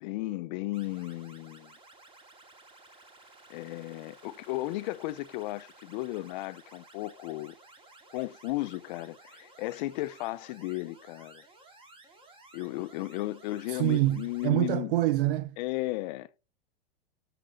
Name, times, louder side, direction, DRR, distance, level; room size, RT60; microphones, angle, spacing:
voice 1, 0.0-1.7 3.5-7.5 8.1-11.4 12.5-14.9 15.6-16.3, left 18 dB, 50° left, 0.7 m, -35 dB
sound 1, 0.7-14.5, right 2 dB, 20° right, 2.4 m, -55 dB
voice 2, 13.7-15.6, right 16 dB, 65° right, 0.6 m, -26 dB
7.6 x 6.9 x 6.4 m
supercardioid pair, 140°, 30 cm